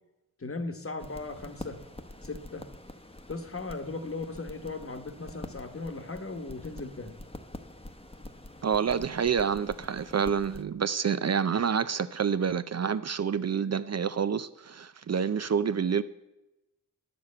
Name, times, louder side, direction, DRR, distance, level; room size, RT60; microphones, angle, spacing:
voice 1, 0.4-1.8 2.2-2.7 3.3-7.2, left 3 dB, 40° left, 1.2 m, -37 dB
sound 1, 1.0-10.6, left 1 dB, 15° left, 0.9 m, -46 dB
voice 2, 8.6-16.0, right 7 dB, 50° right, 0.5 m, -28 dB
10.5 x 6.9 x 8.5 m
wide cardioid pair, 85°, 33 cm